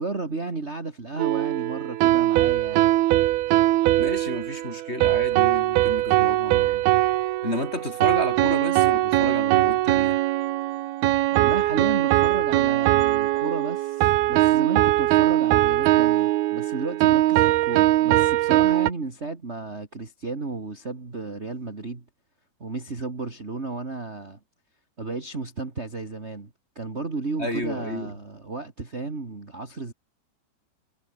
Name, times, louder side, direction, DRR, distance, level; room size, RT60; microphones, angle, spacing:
voice 1, 0.0-2.9 11.3-22.0 22.6-24.4 25.0-29.9, right 3 dB, 25° right, 1.4 m, -33 dB
sound 1, 1.2-18.9, right 16 dB, 80° right, 2.3 m, -21 dB
voice 2, 4.0-6.8 7.4-10.2 27.4-28.1, left 1 dB, 10° left, 6.1 m, -32 dB
omnidirectional pair, 5.5 m